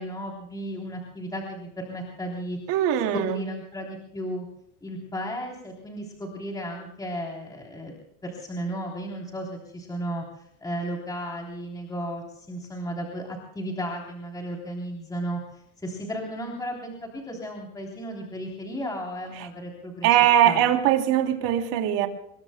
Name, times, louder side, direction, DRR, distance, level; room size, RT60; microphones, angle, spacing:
voice 1, 0.0-2.6 3.1-4.4 4.8-7.9 8.2-20.2 20.4-20.6, equal, 10° left, -1 dB, 3.4 m, -34 dB
voice 2, 2.7-3.4 20.0-22.1, right 11 dB, 70° right, 4 dB, 3.2 m, -21 dB
28.0 x 22.0 x 2.2 m, 0.76 s
cardioid pair, 150°, 34 cm